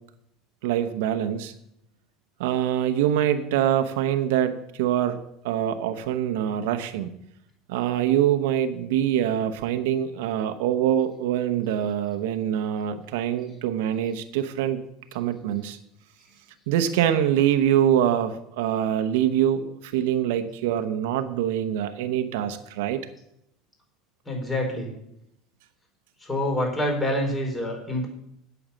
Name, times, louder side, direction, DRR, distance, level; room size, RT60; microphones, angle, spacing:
voice 1, 0.6-1.5 2.4-5.2 5.4-7.1 7.7-14.8 15.1-15.8 16.7-23.0, right 10 dB, 80° right, 9 dB, 0.9 m, -24 dB
voice 2, 24.2-24.9 26.2-28.1, left 1 dB, 20° left, 0 dB, 5.0 m, -26 dB
8.8 x 7.0 x 7.4 m, 0.78 s
supercardioid pair, 105°, 0 cm